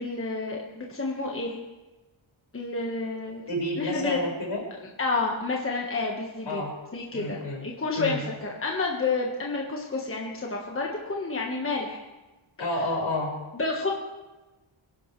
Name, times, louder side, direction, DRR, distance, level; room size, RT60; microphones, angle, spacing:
voice 1, 0.0-1.6 2.5-3.4 3.8-4.2 5.0-6.6 6.9-12.0 13.5-13.9, left 3 dB, 25° left, -1 dB, 1.4 m, -30 dB
voice 2, 3.5-4.6 6.5-6.7 7.1-7.6 8.0-8.2 12.6-13.3, left 1 dB, 65° left, -1 dB, 5.0 m, -30 dB
24.0 x 11.0 x 3.3 m, 1.1 s
wide cardioid pair, 145°, 50 cm